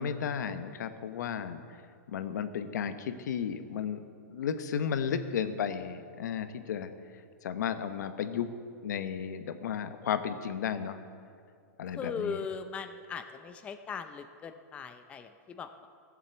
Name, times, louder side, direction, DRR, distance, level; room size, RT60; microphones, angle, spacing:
voice 1, 0.0-1.6 2.1-4.0 4.3-6.9 7.4-8.5 8.8-11.0 11.8-12.4, left 8 dB, 80° left, 10 dB, 1.0 m, -33 dB
voice 2, 11.9-15.9, left 5 dB, 15° left, 8 dB, 0.4 m, -39 dB
14.5 x 7.4 x 8.1 m, 2.3 s
supercardioid pair, 160°, 9 cm